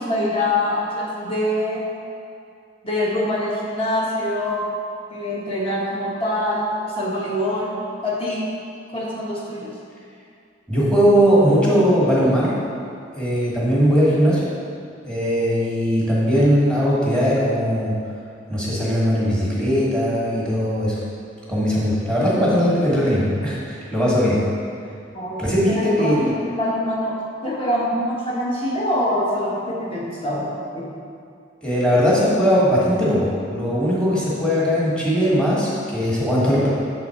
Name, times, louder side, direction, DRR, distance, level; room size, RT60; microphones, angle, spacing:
voice 1, 0.0-1.9 2.8-4.6 5.1-7.7 8.0-8.5 8.9-9.7 25.1-30.9, left 1 dB, 30° left, -5 dB, 1.2 m, -24 dB
voice 2, 10.7-12.5 13.1-14.5 15.0-17.9 18.5-21.0 21.5-24.4 25.4-26.2 31.6-36.7, equal, 5° left, -7 dB, 1.4 m, -19 dB
7.0 x 4.1 x 4.2 m, 2.4 s
head